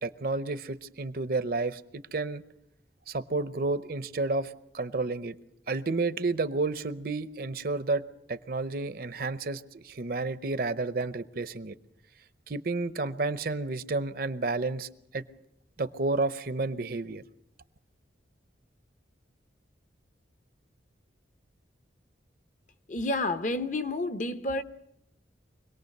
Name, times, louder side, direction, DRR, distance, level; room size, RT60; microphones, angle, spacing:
voice 1, 0.0-2.4 3.1-5.4 5.7-8.0 8.3-11.8 12.5-15.2 15.8-17.2, right 3 dB, 50° right, 0.7 m, -31 dB
voice 2, 22.9-24.6, left 2 dB, 40° left, 0.9 m, -30 dB
25.0 x 18.5 x 6.6 m
head